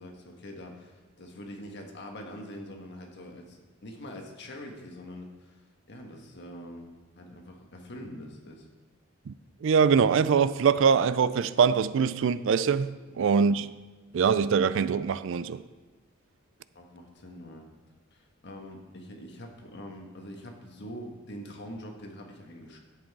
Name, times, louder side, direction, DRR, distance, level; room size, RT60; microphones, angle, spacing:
voice 1, 0.0-5.6 5.9-6.9 7.2-8.7 16.7-17.7 18.1-22.8, equal, 60° left, 1.4 m, -44 dB
voice 2, 9.6-13.8 14.1-15.6, right 6 dB, 70° right, 0.4 m, -23 dB
10.5 x 7.8 x 4.7 m
head